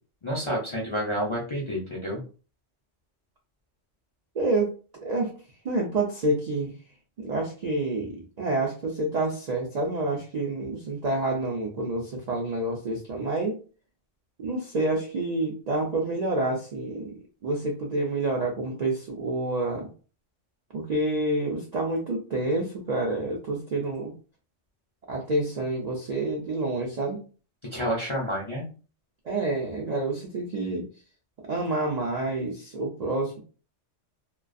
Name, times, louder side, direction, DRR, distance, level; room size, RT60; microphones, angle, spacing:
voice 1, 0.2-2.2 27.7-28.7, equal, 40° left, -5 dB, 0.4 m, -29 dB
voice 2, 4.4-4.7 5.0-5.3 5.6-6.7 7.2-13.6 14.4-17.2 17.4-19.9 20.7-24.1 25.1-27.2 29.2-30.8 31.5-33.4, right 2 dB, 65° right, -1 dB, 0.4 m, -28 dB
2.3 x 2.2 x 2.5 m, 0.37 s
omnidirectional pair, 1.2 m